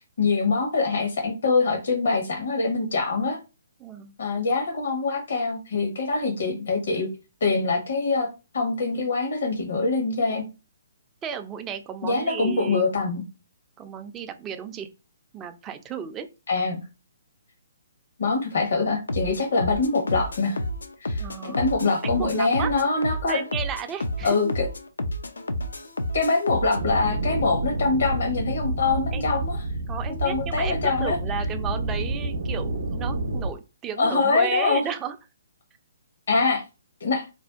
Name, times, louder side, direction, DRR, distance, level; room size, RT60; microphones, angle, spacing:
voice 1, 0.2-3.4 4.2-7.1 7.4-10.5 12.0-13.2 16.5-16.8 18.2-20.6 21.0-23.4 24.2-24.7 26.1-29.6 30.2-31.2 34.0-34.8 36.3-36.6 37.0-37.2, left 3 dB, 70° left, 0.9 m, -24 dB
voice 2, 3.8-4.1 11.2-12.8 13.8-14.9 15.3-16.3 21.2-21.7 22.0-22.7 23.3-24.5 29.1-29.2 29.9-35.2, right 8 dB, 20° right, 0.3 m, -34 dB
sound 1, 19.1-26.8, left 1 dB, 85° left, 0.4 m, -31 dB
sound 2, 26.7-33.5, right 2 dB, 75° right, 0.5 m, -29 dB
2.5 x 2.1 x 2.4 m
hypercardioid pair, 140°, 0 cm